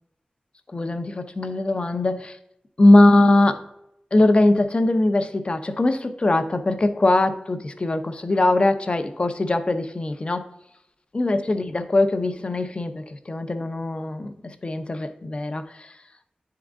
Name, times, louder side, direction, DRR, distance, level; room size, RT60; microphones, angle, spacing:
voice 1, 0.7-2.3 2.8-3.6 4.1-10.5 11.1-15.9, left 2 dB, 40° left, 9 dB, 0.6 m, -21 dB
10.5 x 3.8 x 3.5 m, 0.80 s
wide cardioid pair, 85°, 3 cm